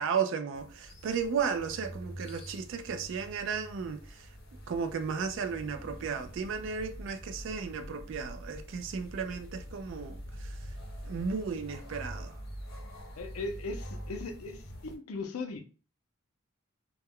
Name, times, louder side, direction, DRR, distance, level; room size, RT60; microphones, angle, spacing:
voice 1, 0.0-4.3 4.7-10.6 11.1-12.4, right 6 dB, 60° right, 0.3 m, -34 dB
sound 1, 0.5-15.0, equal, 45° left, 0.7 m, -45 dB
voice 2, 13.2-15.6, left 3 dB, 80° left, 0.5 m, -38 dB
2.2 x 2.1 x 3.4 m
head